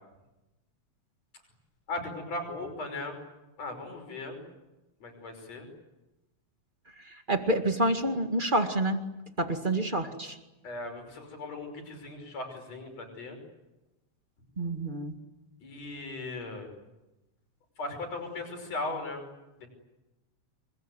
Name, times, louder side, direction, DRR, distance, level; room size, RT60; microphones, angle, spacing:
voice 1, 1.9-3.2 3.6-4.4 5.0-5.7 10.6-13.4 15.6-16.7 17.8-19.2 19.6-19.7, left 2 dB, 65° left, 5 dB, 6.8 m, -38 dB
voice 2, 7.3-9.0 9.4-10.4 14.6-15.1, right 1 dB, 20° right, 6 dB, 1.7 m, -28 dB
28.0 x 22.0 x 9.5 m, 1.0 s
omnidirectional pair, 3.3 m